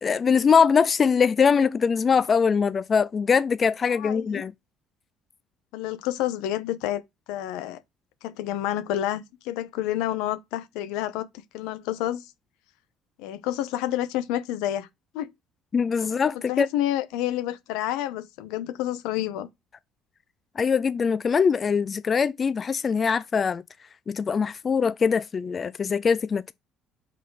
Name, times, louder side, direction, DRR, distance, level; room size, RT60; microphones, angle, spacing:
voice 1, 0.0-4.5 15.7-16.7 20.6-23.6 24.1-26.5, left 6 dB, 35° left, 0.4 m, -22 dB
voice 2, 4.0-4.4 5.7-7.0 7.3-7.8 8.2-12.3 13.2-14.9 15.1-15.3 16.0-19.5, left 13 dB, 85° left, 0.8 m, -29 dB
5.7 x 4.2 x 4.7 m
cardioid pair, 110°, 0 cm